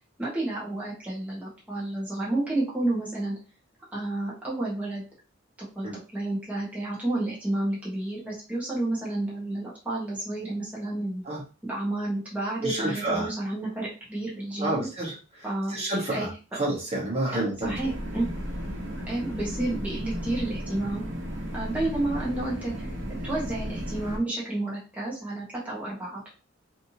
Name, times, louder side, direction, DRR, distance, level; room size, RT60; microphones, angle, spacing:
voice 1, 0.2-3.3 3.9-5.0 5.6-11.2 11.6-14.9 15.4-15.7 16.1-16.3 17.3-18.3 19.1-21.0 21.5-22.9 23.2-26.3, right 2 dB, 10° right, -7 dB, 1.2 m, -30 dB
voice 2, 12.6-13.3 14.6-17.9, right 2 dB, 35° right, -4 dB, 1.2 m, -29 dB
sound 1, 17.6-24.2, equal, 75° right, 1.0 m, -34 dB
3.3 x 2.8 x 2.8 m, 0.33 s
head